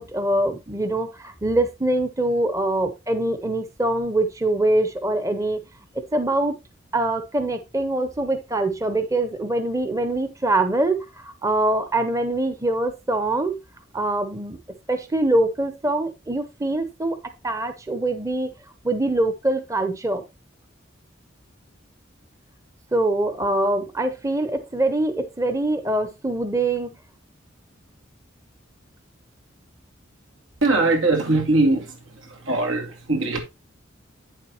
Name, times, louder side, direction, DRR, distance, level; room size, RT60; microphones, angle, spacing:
voice 1, 0.0-5.6 5.9-6.5 6.9-13.6 13.9-14.6 14.9-17.2 17.4-18.5 18.8-20.2 22.9-27.0, right 2 dB, 15° right, 0.7 m, -24 dB
voice 2, 30.6-31.9 32.5-33.4, right 2 dB, 85° right, 2.5 m, -20 dB
8.9 x 7.4 x 3.0 m
head